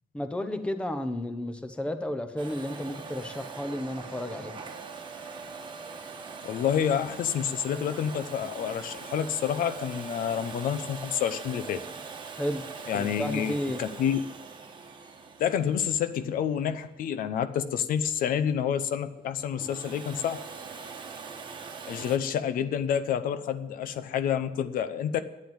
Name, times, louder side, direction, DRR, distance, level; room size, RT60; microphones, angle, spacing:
voice 1, 0.1-4.6 12.4-12.6 12.9-13.8, left 1 dB, 10° left, 8 dB, 1.0 m, -32 dB
Domestic sounds home sounds, 2.4-17.1 19.4-22.2, right 5 dB, 35° right, 1.5 m, -42 dB
voice 2, 6.4-11.8 12.9-14.2 15.4-20.4 21.9-25.2, left 8 dB, 85° left, 12 dB, 0.8 m, -28 dB
10.5 x 9.4 x 7.6 m, 1.0 s
cardioid pair, 140°, 14 cm